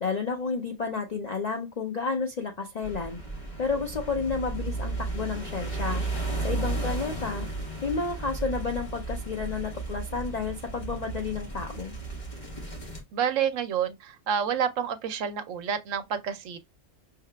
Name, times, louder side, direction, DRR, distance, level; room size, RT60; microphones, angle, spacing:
voice 1, 0.0-3.2 3.6-6.0 6.4-7.5 7.8-11.9, left 4 dB, 60° left, 0.4 m, -31 dB
sound 1, 2.8-13.0, right 2 dB, 35° left, 1.4 m, -34 dB
voice 2, 13.1-16.6, right 8 dB, 80° right, 1.0 m, -29 dB
5.6 x 3.3 x 2.2 m
omnidirectional pair, 1.3 m